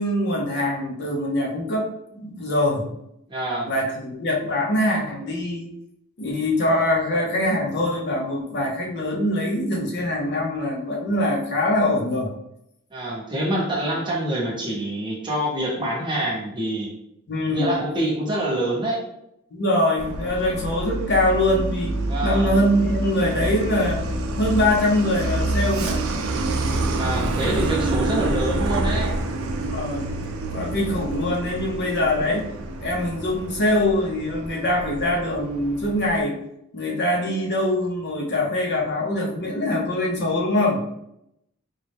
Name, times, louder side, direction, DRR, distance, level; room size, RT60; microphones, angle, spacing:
voice 1, 0.0-2.9 3.7-5.7 6.2-12.3 13.9-14.0 17.3-17.8 19.5-24.0 24.4-26.1 29.7-30.0 30.5-32.5 32.8-36.4 36.7-40.8, left 1 dB, 50° left, -1 dB, 0.7 m, -23 dB
voice 2, 3.3-3.7 12.9-16.9 17.5-19.0 22.1-22.5 27.0-29.1, right 1 dB, 20° right, -3 dB, 0.8 m, -26 dB
Truck, 20.0-36.2, right 2 dB, 75° right, 0.5 m, -27 dB
3.9 x 2.2 x 3.4 m, 0.79 s
head